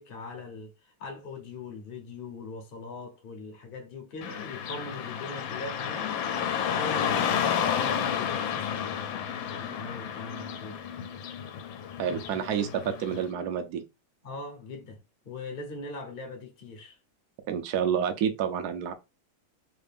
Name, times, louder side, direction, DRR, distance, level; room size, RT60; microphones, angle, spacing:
voice 1, 0.0-6.2 6.6-9.2 9.5-10.9 14.2-15.0 15.2-17.0, left 3 dB, 45° left, 0.7 m, -41 dB
Car passing by / Traffic noise roadway noise, 4.2-13.2, left 8 dB, 85° left, 1.4 m, -31 dB
voice 2, 12.0-13.8 17.5-18.9, right 8 dB, 70° right, 0.9 m, -29 dB
3.4 x 2.5 x 3.4 m
omnidirectional pair, 2.1 m